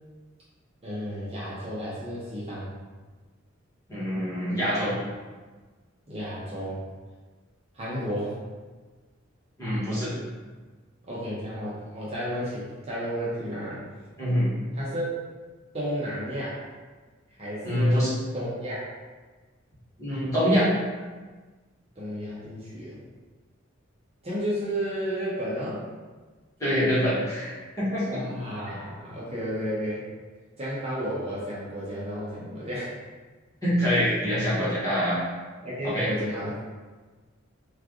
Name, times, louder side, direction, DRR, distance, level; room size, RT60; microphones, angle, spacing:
voice 1, 0.8-2.7 6.1-6.8 7.7-8.3 11.1-13.8 14.7-15.2 15.7-16.6 17.3-18.1 18.3-18.8 22.0-23.0 24.2-25.8 28.1-30.0 30.6-32.9 34.5-34.8 35.6-36.6, equal, 30° right, -8 dB, 0.8 m, -32 dB
voice 2, 3.9-4.9 9.6-10.1 14.2-14.5 17.6-18.1 20.0-20.7 26.6-28.1 28.7-28.8 33.6-35.2 35.8-36.1, equal, 15° left, -10 dB, 1.2 m, -25 dB
3.2 x 2.4 x 3.7 m, 1.3 s
head